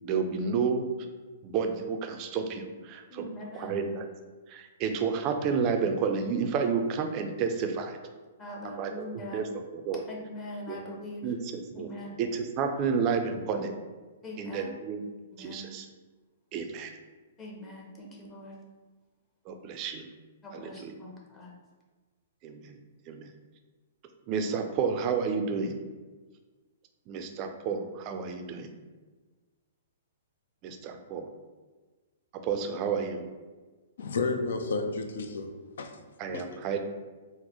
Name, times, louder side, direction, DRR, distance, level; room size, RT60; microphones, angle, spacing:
voice 1, 0.0-0.8 1.4-3.3 3.5-4.0 4.5-8.0 8.8-8.9 9.3-9.5 9.7-10.0 10.7-10.8 11.2-11.4 11.7-11.9 12.2-13.7 14.4-15.0 15.4-15.9 16.5-16.9 19.5-20.0 20.6-20.9 22.4-22.8 23.1-23.3 24.3-25.8 27.1-28.7 30.6-31.3 32.3-33.3 36.2-36.8, right 6 dB, 35° right, 6 dB, 0.4 m, -30 dB
voice 2, 3.1-4.0 8.4-9.5 10.1-11.3 11.7-12.2 14.2-14.8 15.3-15.8 17.4-18.6 20.4-21.5, left 1 dB, 20° left, -3 dB, 0.7 m, -42 dB
voice 3, 34.0-35.5 35.8-36.0 36.3-36.6, left 3 dB, 75° left, 6 dB, 0.4 m, -31 dB
3.8 x 2.0 x 3.0 m, 1.3 s
hypercardioid pair, 135°, 0 cm